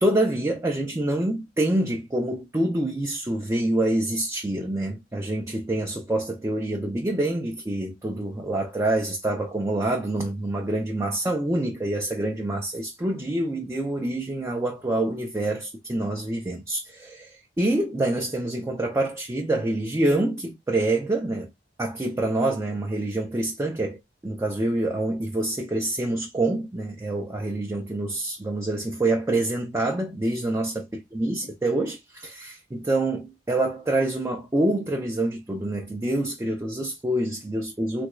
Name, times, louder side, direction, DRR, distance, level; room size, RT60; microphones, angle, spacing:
voice 1, 0.0-21.5 21.8-24.0 24.2-38.1, right 1 dB, 15° right, 0.4 m, -26 dB
3.3 x 2.2 x 3.0 m
head